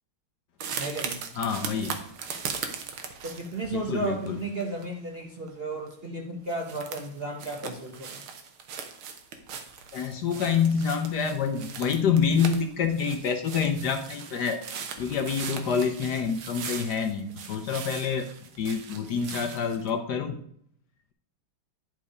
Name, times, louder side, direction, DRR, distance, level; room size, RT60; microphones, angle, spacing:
sound 1, 0.6-5.2 5.5-5.9 6.2-6.3 6.5-19.9, right 6 dB, 80° right, 1.9 m, -39 dB
voice 1, 0.7-1.2 3.2-8.2, right 2 dB, 45° right, 1 dB, 0.8 m, -34 dB
voice 2, 1.4-2.0 3.7-4.4 9.9-14.6 15.0-18.3 18.6-20.4, left 6 dB, 65° left, 7 dB, 1.1 m, -27 dB
10.5 x 4.6 x 4.9 m, 0.68 s
omnidirectional pair, 2.3 m